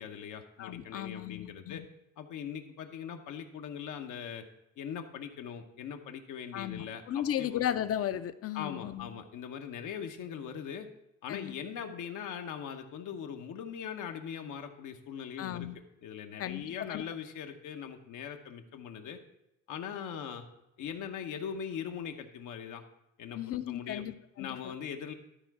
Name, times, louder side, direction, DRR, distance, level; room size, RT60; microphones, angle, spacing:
voice 1, 0.0-1.8 2.2-4.4 4.8-7.6 8.5-10.9 11.2-15.7 16.0-19.2 19.7-20.5 20.8-22.8 23.2-24.0 24.4-25.1, left 8 dB, 85° left, 5 dB, 1.0 m, -41 dB
voice 2, 0.6-1.8 6.5-9.1 11.3-11.5 15.4-15.8 16.4-16.6 16.9-17.0 23.4-24.7, left 11 dB, 50° left, 13 dB, 0.5 m, -35 dB
12.0 x 4.6 x 4.7 m, 0.85 s
cardioid pair, 90°, 30 cm